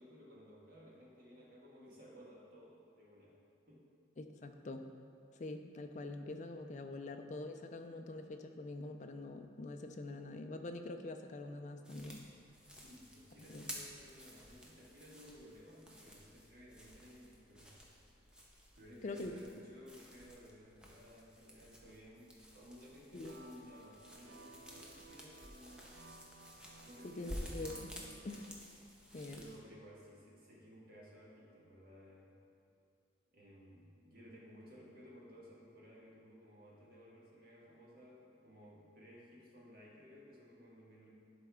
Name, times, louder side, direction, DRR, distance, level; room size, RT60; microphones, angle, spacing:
voice 1, 0.0-3.4 3.7-3.9 12.7-17.8 18.7-26.1 26.8-27.6 29.3-32.3 33.3-41.1, equal, 50° right, -5 dB, 1.6 m, -57 dB
voice 2, 4.2-4.9 5.4-12.3 13.5-13.7 19.0-19.3 23.1-23.3 27.0-27.9 28.2-28.5 29.1-29.4, left 2 dB, 40° left, 6 dB, 0.4 m, -45 dB
sound 1, 11.8-29.6, equal, 5° right, 0.7 m, -53 dB
sound 2, 23.2-28.6, right 2 dB, 70° right, 0.5 m, -58 dB
11.0 x 4.3 x 3.6 m, 2.6 s
head